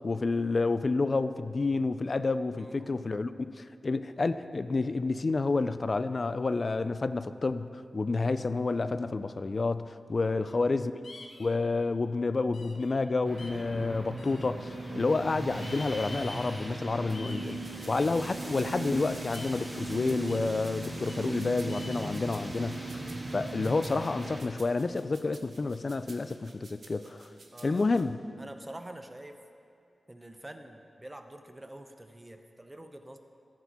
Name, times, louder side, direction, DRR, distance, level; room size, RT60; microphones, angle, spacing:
voice 1, 0.0-10.9 11.4-22.8 23.3-27.3 27.6-28.2, left 3 dB, 50° left, 12 dB, 0.3 m, -29 dB
voice 2, 2.6-3.0 10.2-10.7 17.7-17.9 27.5-28.1 28.4-29.4 30.1-33.2, right 1 dB, 20° right, 6 dB, 0.7 m, -47 dB
sound 1, 11.0-11.6 12.5-13.0 13.4-13.6 14.2-14.9 15.5-16.8 17.0-18.4 19.3-19.7 20.3-20.5 21.1-21.3 21.7-22.5, left 2 dB, 75° left, 0.8 m, -48 dB
sound 2, 13.2-24.4, right 2 dB, 35° right, 2.0 m, -38 dB
sound 3, 17.1-28.0, right 3 dB, 75° right, 0.9 m, -54 dB
14.0 x 4.9 x 4.1 m, 2.5 s
cardioid pair, 60°, 0 cm